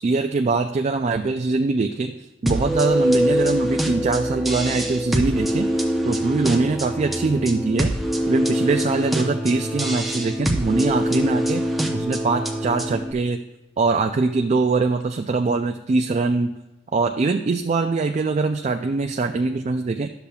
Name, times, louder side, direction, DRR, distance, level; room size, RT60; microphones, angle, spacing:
voice 1, 0.0-7.9 8.3-11.6 11.9-13.4 13.8-16.6 16.9-20.1, right 3 dB, 35° right, 6 dB, 0.3 m, -23 dB
sound 1, 2.5-13.1, equal, ahead, 0.7 m, -24 dB
11.5 x 6.9 x 2.3 m, 0.99 s
head